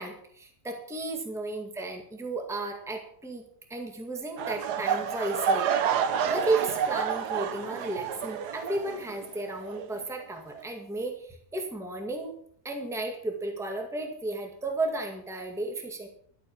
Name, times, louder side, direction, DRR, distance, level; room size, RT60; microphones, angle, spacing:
voice 1, 0.0-3.4 3.7-5.7 6.3-12.4 12.6-16.1, right 2 dB, ahead, 3 dB, 1.9 m, -33 dB
sound 1, 4.4-9.4 9.7-10.0 10.5-10.6, right 7 dB, 90° right, 1.5 m, -29 dB
12.0 x 8.4 x 7.2 m, 0.63 s
omnidirectional pair, 1.7 m